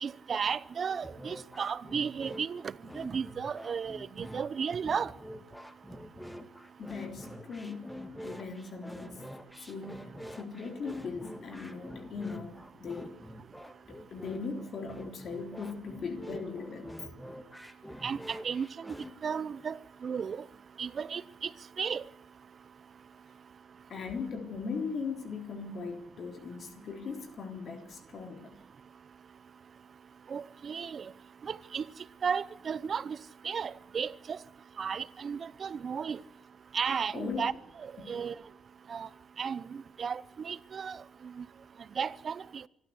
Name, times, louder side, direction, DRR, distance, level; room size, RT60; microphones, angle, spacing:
voice 1, 0.0-5.1 18.0-18.9 19.2-20.4 20.8-21.5 21.8-22.0 30.3-31.1 31.4-31.9 32.2-33.2 33.4-34.4 34.8-36.2 36.7-37.5 37.8-38.3 38.9-39.1 39.4-41.4 42.0-42.6, right 6 dB, 45° right, 0.7 m, -34 dB
sound 1, 1.0-19.1, equal, 5° left, 2.0 m, -46 dB
voice 2, 6.8-8.0 8.2-9.2 9.7-13.1 13.9-16.9 23.9-28.6 37.1-37.5 38.0-38.2, left 5 dB, 55° left, 3.7 m, -39 dB
25.5 x 12.5 x 8.1 m
cardioid pair, 90°, 0 cm